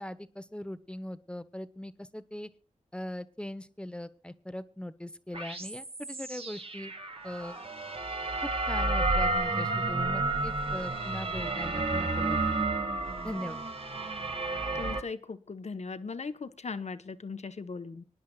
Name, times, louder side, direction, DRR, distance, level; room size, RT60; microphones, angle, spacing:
voice 1, 0.0-2.5 2.9-6.9 7.2-7.6 8.4-12.4 13.2-13.6, left 1 dB, 5° left, 11 dB, 1.0 m, -40 dB
sound 1, 5.3-15.0, right 2 dB, 45° right, 2.1 m, -31 dB
voice 2, 14.7-18.0, left 4 dB, 55° left, 9 dB, 1.1 m, -38 dB
25.0 x 10.5 x 2.4 m, 0.35 s
wide cardioid pair, 75°, 13 cm